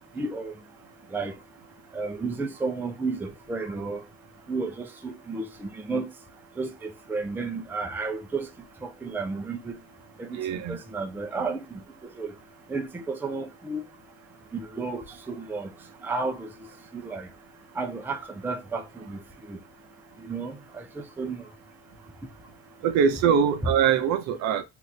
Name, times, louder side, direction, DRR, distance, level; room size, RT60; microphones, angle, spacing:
voice 1, 0.2-0.5 1.1-1.3 1.9-4.0 4.5-6.1 6.6-8.5 8.8-9.8 10.2-11.8 12.2-12.3 12.7-13.8 14.5-15.7 16.0-16.5 16.9-17.3 17.8-19.2 19.5-19.6 20.2-21.5, right 3 dB, 5° right, 0.5 m, -32 dB
voice 2, 10.3-10.8 22.8-24.6, right 7 dB, 60° right, 0.7 m, -23 dB
2.8 x 2.5 x 3.2 m
cardioid pair, 110°, 32 cm